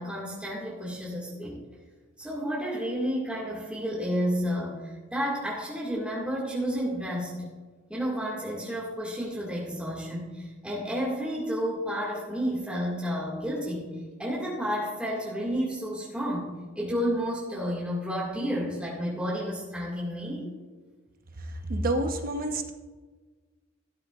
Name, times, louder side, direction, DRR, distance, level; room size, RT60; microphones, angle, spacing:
voice 1, 0.0-1.6 2.2-7.5 7.9-20.5, equal, 5° right, -6 dB, 2.1 m, -31 dB
voice 2, 21.4-22.7, right 1 dB, 50° right, 5 dB, 1.1 m, -29 dB
13.5 x 12.5 x 2.5 m, 1.3 s
head